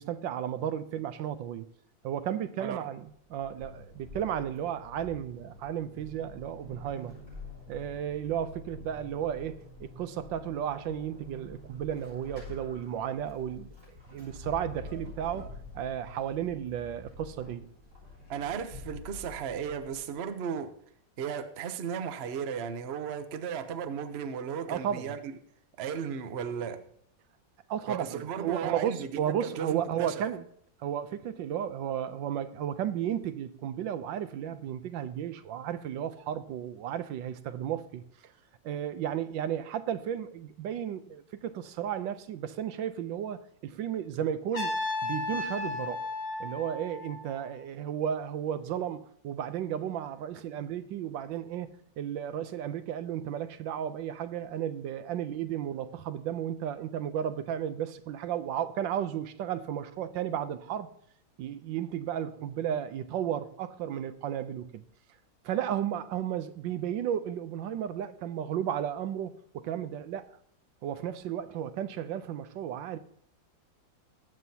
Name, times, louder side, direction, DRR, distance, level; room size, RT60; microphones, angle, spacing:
voice 1, 0.0-1.7 2.0-7.2 7.7-13.7 14.1-17.7 24.7-25.2 27.7-30.5 30.8-38.3 38.6-44.8 45.0-46.1 46.4-51.7 52.0-60.9 61.4-64.8 65.4-70.3 70.8-73.0, right 9 dB, 85° right, 1.4 m, -34 dB
Vehicle / Accelerating revving vroom / Squeak, 3.1-20.3, left 2 dB, 30° right, 5.6 m, -47 dB
voice 2, 18.3-20.7 21.2-25.3 25.8-26.8 27.9-30.2, right 7 dB, 50° right, 0.8 m, -35 dB
Trumpet, 44.5-47.5, left 3 dB, 45° left, 5.1 m, -34 dB
19.5 x 7.6 x 2.8 m
omnidirectional pair, 2.0 m